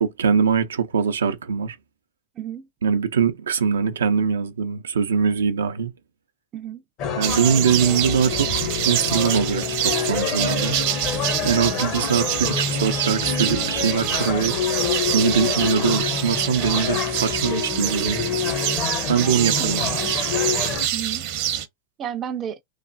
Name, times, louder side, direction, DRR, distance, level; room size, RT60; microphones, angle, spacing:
voice 1, 0.0-1.8 2.8-5.9 7.2-10.8 11.4-14.6 15.1-18.2 19.1-19.9, right 6 dB, 85° right, 0.5 m, -22 dB
voice 2, 2.4-2.7 6.5-6.8 19.6-20.1 20.9-21.2 22.0-22.6, right 9 dB, 30° right, 0.4 m, -32 dB
sound 1, 7.0-20.9, left 7 dB, 45° left, 0.7 m, -27 dB
sound 2, 7.2-21.6, right 11 dB, 55° right, 0.7 m, -26 dB
3.1 x 2.1 x 2.6 m
hypercardioid pair, 110°, 0 cm